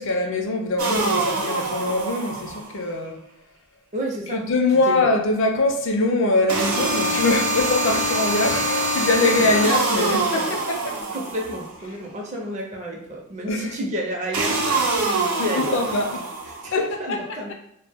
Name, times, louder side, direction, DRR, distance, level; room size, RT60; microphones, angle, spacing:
voice 1, 0.0-3.2 4.3-11.0 13.5-13.8 15.4-16.1 16.7-16.8, left 2 dB, 55° left, 3 dB, 0.4 m, -23 dB
sound 1, 0.8-2.8 6.5-11.8 14.3-16.7, right 2 dB, 75° right, 0.5 m, -24 dB
voice 2, 3.9-4.5 4.9-5.2 7.8-8.2 9.4-9.7 10.3-10.5 11.1-14.9 15.4-16.0 16.4-17.5, equal, 30° right, 0 dB, 0.4 m, -30 dB
2.1 x 2.0 x 3.3 m, 0.79 s
head